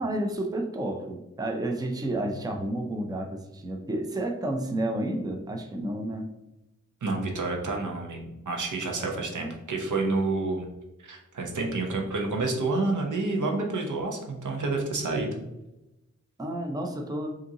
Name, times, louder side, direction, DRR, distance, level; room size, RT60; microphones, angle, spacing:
voice 1, 0.0-6.3 9.0-9.5 16.4-17.3, right 1 dB, 15° right, 3 dB, 0.5 m, -31 dB
voice 2, 7.0-10.7 11.0-15.4, right 3 dB, 75° right, 1 dB, 0.9 m, -29 dB
5.1 x 2.8 x 2.8 m, 0.94 s
wide cardioid pair, 80°, 31 cm